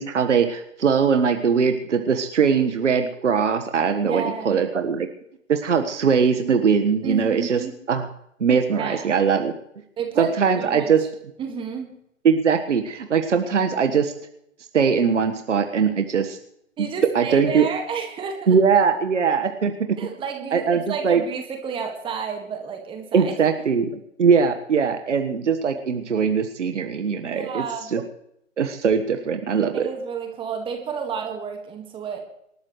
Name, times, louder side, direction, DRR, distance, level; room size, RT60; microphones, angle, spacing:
voice 1, 0.0-5.1 5.5-7.6 7.9-8.1 8.4-9.5 10.2-11.0 12.2-14.1 14.7-16.4 17.1-17.7 18.5-19.7 20.5-21.2 23.1-23.9 24.2-27.6 27.9-28.0 28.6-29.9, right 6 dB, 65° right, 6 dB, 1.5 m, -21 dB
voice 2, 4.0-4.6 7.0-7.7 8.8-9.1 10.0-10.9 11.4-11.9 16.8-18.6 20.0-23.3 23.6-23.7 27.3-27.9 29.7-32.2, right 6 dB, 15° right, 4 dB, 1.8 m, -31 dB
27.0 x 13.0 x 3.2 m, 0.76 s
figure-of-eight pair, 130°, 39 cm